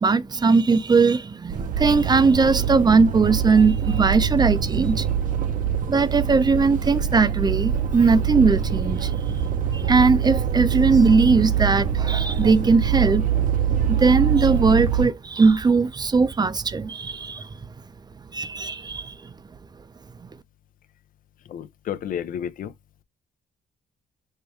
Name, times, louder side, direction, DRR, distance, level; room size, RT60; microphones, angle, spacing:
voice 1, 0.0-5.1 5.9-9.1 9.7-13.4 13.9-17.5 18.3-19.3, right 4 dB, 25° right, 0.5 m, -19 dB
sound 1, 1.5-15.1, right 8 dB, 60° right, 0.8 m, -24 dB
voice 2, 21.5-22.7, left 9 dB, 65° left, 0.6 m, -31 dB
5.5 x 2.2 x 3.1 m
cardioid pair, 75°, 15 cm